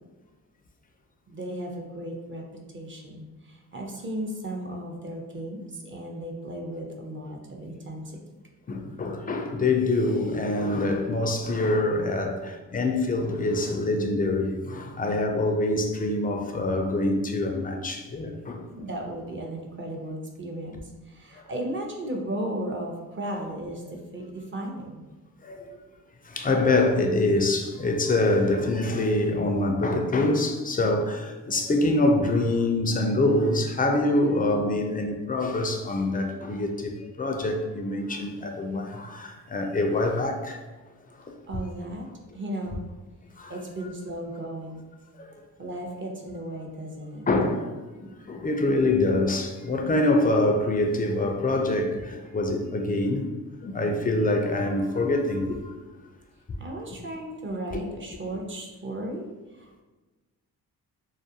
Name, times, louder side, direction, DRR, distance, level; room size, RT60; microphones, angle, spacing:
voice 1, 1.3-8.2 18.8-25.1 41.5-42.1 42.3-42.9 43.5-44.9 45.6-47.3 56.6-59.8, right 1 dB, 30° right, 0 dB, 0.6 m, -35 dB
voice 2, 8.7-18.6 23.4-23.5 25.4-25.8 26.2-40.6 41.2-41.3 43.4-43.5 45.2-45.3 47.3-47.7 48.0-53.3 53.6-55.7 57.7-57.8, left 2 dB, 25° left, 3 dB, 0.3 m, -25 dB
2.3 x 2.1 x 2.7 m, 1.2 s
supercardioid pair, 50°, 39 cm